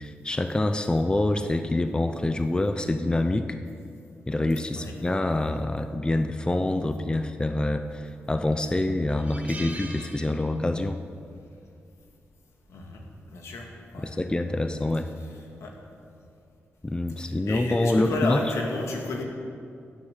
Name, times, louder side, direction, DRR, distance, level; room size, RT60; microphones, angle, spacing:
voice 1, 0.0-3.5 4.3-11.0 14.0-15.1 16.8-18.4, left 2 dB, 20° left, 8 dB, 0.7 m, -26 dB
sound 1, 7.9-8.2 8.6-8.7 9.1-10.9 11.2-11.4 12.7-13.0, right 1 dB, 30° right, 2.1 m, -42 dB
voice 2, 12.7-13.1 13.3-14.2 15.2-15.3 15.6-15.7 17.2-19.2, left 3 dB, 85° left, 1 dB, 2.1 m, -32 dB
16.0 x 7.3 x 6.7 m, 2.4 s
cardioid pair, 65°, 5 cm